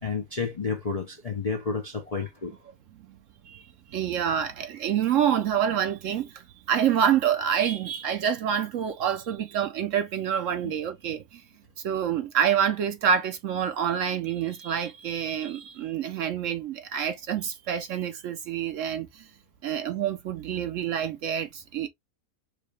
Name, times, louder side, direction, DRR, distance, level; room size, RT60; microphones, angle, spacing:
voice 1, 0.0-2.5 10.6-10.7, left 5 dB, 50° left, 0.4 m, -31 dB
voice 2, 3.9-11.4 11.8-19.3 19.6-21.9, right 8 dB, 65° right, 0.9 m, -27 dB
4.8 x 2.2 x 3.2 m
omnidirectional pair, 1.6 m